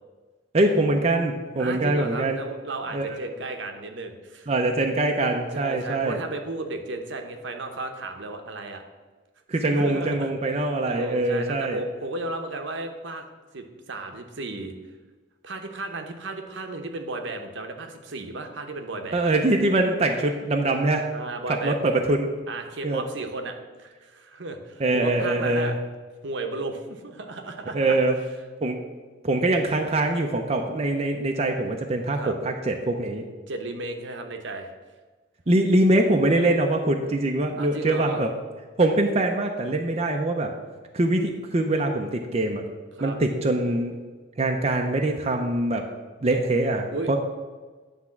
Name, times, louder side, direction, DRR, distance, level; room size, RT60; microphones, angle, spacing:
voice 1, 0.5-2.4 2.9-3.1 4.5-6.2 9.5-11.8 19.1-21.1 21.6-22.3 22.8-23.0 24.8-25.8 27.7-28.1 28.6-28.8 29.2-33.2 35.5-38.3 38.8-40.5 40.9-42.7 43.0-43.9 44.4-45.8 46.2-47.2, right 2 dB, 35° right, 2 dB, 0.6 m, -23 dB
voice 2, 1.6-4.5 5.5-8.8 9.5-10.3 10.9-13.3 13.5-14.7 15.4-19.3 21.1-21.8 22.5-25.8 26.2-28.0 32.1-32.3 33.5-34.7 37.6-38.3 43.0-43.2 46.9-47.2, right 2 dB, 65° right, 5 dB, 0.9 m, -34 dB
9.7 x 3.6 x 7.1 m, 1.4 s
head